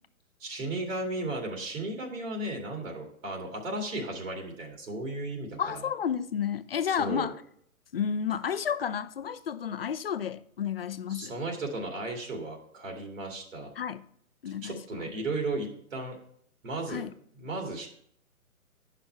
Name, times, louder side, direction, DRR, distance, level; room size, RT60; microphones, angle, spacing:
voice 1, 0.4-5.8 6.9-7.3 11.1-13.7 14.6-16.2 16.6-17.0 17.4-17.9, right 2 dB, 60° right, 2.4 m, -35 dB
voice 2, 5.6-7.3 7.9-11.3 13.8-14.0 14.4-15.1 16.9-17.1, left 8 dB, 45° left, 0.5 m, -31 dB
10.0 x 5.9 x 4.5 m
hypercardioid pair, 145°, 43 cm